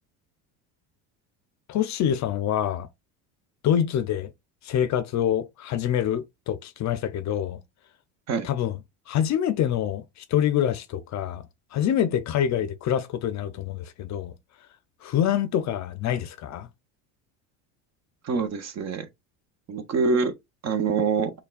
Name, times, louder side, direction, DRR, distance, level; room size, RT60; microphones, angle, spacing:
voice 1, 1.7-2.9 3.6-4.3 4.6-7.6 8.4-8.8 9.1-11.4 11.7-14.3 15.0-16.7, left 10 dB, 45° left, 0.5 m, -26 dB
voice 2, 18.2-19.0 19.7-20.3 20.6-21.3, right 5 dB, 40° right, 0.7 m, -25 dB
5.5 x 2.3 x 2.3 m
supercardioid pair, 90°, 41 cm